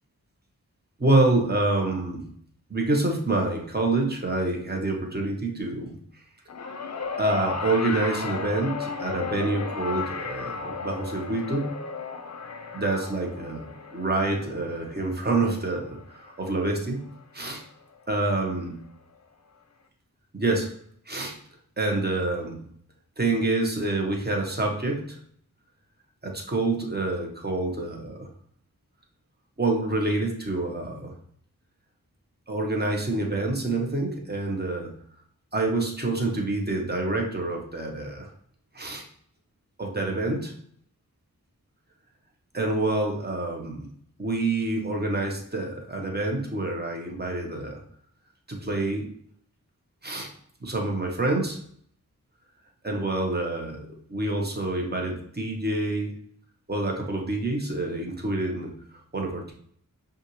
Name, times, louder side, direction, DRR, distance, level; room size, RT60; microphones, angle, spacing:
voice 1, 1.0-2.3 2.7-6.2 7.2-11.7 12.7-17.0 17.3-17.6 18.1-18.7 20.3-20.7 21.1-21.3 21.8-22.6 23.2-25.2 26.2-28.3 29.6-31.1 32.5-34.9 35.5-38.3 38.7-39.0 39.8-40.5 42.5-43.9 44.2-47.8 48.5-49.1 50.0-50.3 50.6-51.6 52.8-56.2 56.7-58.8 59.1-59.5, right 2 dB, 30° right, 1 dB, 1.2 m, -27 dB
sound 1, 6.5-16.9 18.0-18.1, left 5 dB, 50° left, 0.6 m, -35 dB
5.4 x 2.6 x 3.1 m, 0.64 s
cardioid pair, 45°, 34 cm